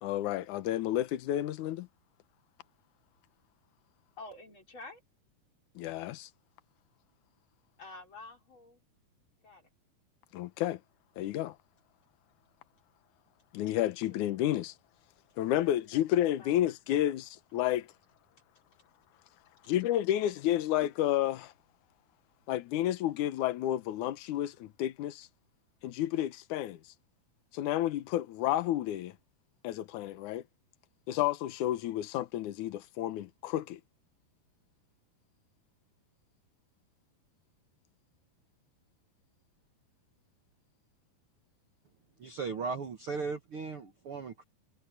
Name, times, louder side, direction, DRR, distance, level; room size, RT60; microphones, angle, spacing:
voice 1, 0.0-1.9 5.8-6.3 10.3-10.8 11.2-11.6 13.5-14.7 15.4-17.9 19.7-21.5 22.5-25.3 25.8-26.8 27.5-29.1 29.6-30.4 31.1-33.8, left 13 dB, 65° left, 2.1 m, -31 dB
voice 2, 4.2-5.0 7.8-8.8 9.4-9.6 14.1-14.2 15.6-16.0 16.4-16.5, left 2 dB, 30° left, 5.2 m, -49 dB
voice 3, 42.2-44.4, right 5 dB, 65° right, 1.3 m, -37 dB
omnidirectional pair, 4.6 m